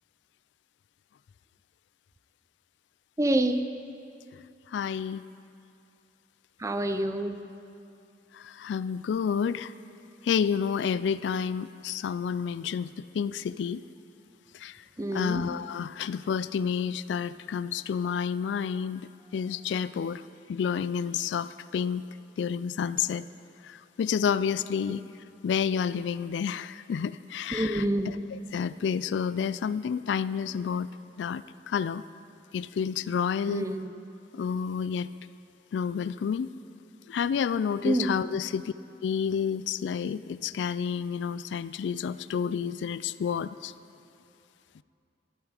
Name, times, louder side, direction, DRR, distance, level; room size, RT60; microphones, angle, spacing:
voice 1, 3.2-3.6 6.6-7.4 15.0-15.5 27.5-28.2 33.5-33.9 37.8-38.2, right 1 dB, 20° right, 8 dB, 0.5 m, -27 dB
voice 2, 4.7-5.2 8.3-9.7 10.2-13.8 14.6-14.7 15.1-20.2 20.5-22.0 22.4-23.3 23.6-25.0 25.4-30.9 31.2-32.0 32.5-33.7 34.3-35.1 35.7-36.5 37.1-38.7 39.0-43.7, left 7 dB, 75° left, 16 dB, 0.3 m, -30 dB
12.5 x 12.0 x 4.9 m, 2.6 s
head